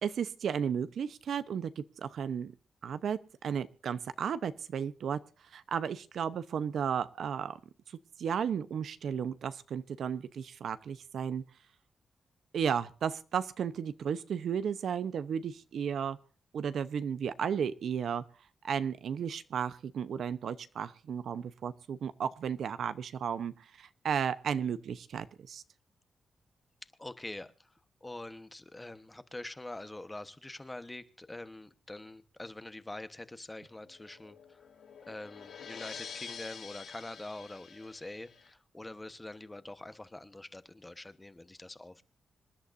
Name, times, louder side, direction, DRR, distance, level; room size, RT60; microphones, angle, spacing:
voice 1, 0.0-2.5 2.8-5.2 5.5-7.6 7.9-11.4 12.5-16.2 16.5-18.2 18.6-25.6, right 7 dB, 75° right, 0.8 m, -34 dB
voice 2, 27.0-34.7 35.1-42.0, left 2 dB, 15° left, 1.1 m, -45 dB
sound 1, 33.7-38.5, left 7 dB, 75° left, 3.3 m, -48 dB
26.5 x 11.5 x 2.6 m
wide cardioid pair, 120°, 0 cm